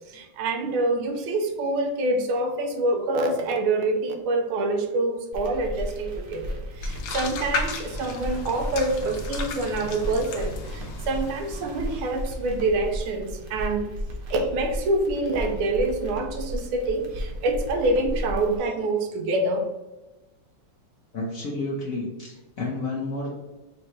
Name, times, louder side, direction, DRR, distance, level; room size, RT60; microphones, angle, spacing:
voice 1, 0.1-13.9 14.3-19.7, right 2 dB, 90° right, 4 dB, 1.6 m, -26 dB
sound 1, 5.3-18.6, equal, 60° right, 1.4 m, -34 dB
sound 2, 6.8-12.7, left 3 dB, 85° left, 1.6 m, -35 dB
voice 2, 21.1-23.3, left 2 dB, 55° left, -3 dB, 1.0 m, -31 dB
5.0 x 3.2 x 2.8 m, 1.1 s
omnidirectional pair, 2.3 m